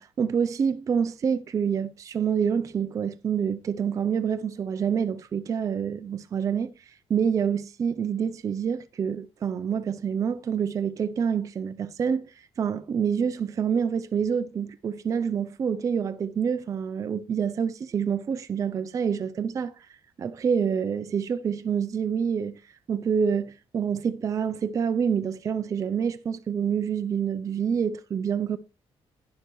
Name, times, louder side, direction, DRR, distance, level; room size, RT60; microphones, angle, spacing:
voice 1, 0.0-6.7 7.1-19.9 20.2-22.6 22.9-28.6, right 7 dB, 30° right, 0.4 m, -27 dB
11.5 x 10.5 x 3.1 m
cardioid pair, 175°, 11 cm